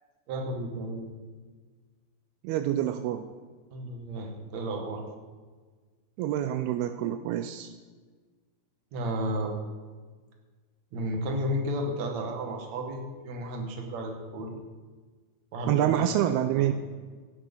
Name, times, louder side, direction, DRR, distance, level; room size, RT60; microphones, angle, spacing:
voice 1, 0.3-1.1 3.7-5.0 8.9-9.6 10.9-14.6 15.5-16.1 16.5-16.7, equal, 50° right, 2 dB, 2.5 m, -33 dB
voice 2, 2.4-3.3 6.2-7.7 15.7-16.7, right 11 dB, 85° right, 10 dB, 2.2 m, -27 dB
17.0 x 9.0 x 5.5 m, 1.4 s
omnidirectional pair, 5.1 m